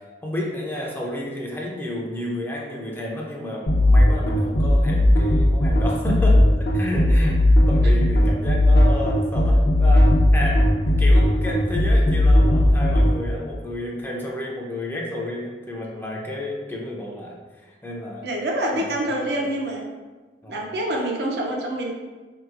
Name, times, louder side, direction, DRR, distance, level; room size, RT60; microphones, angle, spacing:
voice 1, 0.2-10.6 10.9-18.2 18.7-19.5 20.4-20.6, left 1 dB, 10° left, -2 dB, 0.4 m, -31 dB
sound 1, 3.7-13.1, left 1 dB, 60° left, 0.6 m, -17 dB
voice 2, 18.2-19.8 20.5-21.9, right 1 dB, 65° right, 0 dB, 0.6 m, -26 dB
3.7 x 2.8 x 2.4 m, 1.3 s
head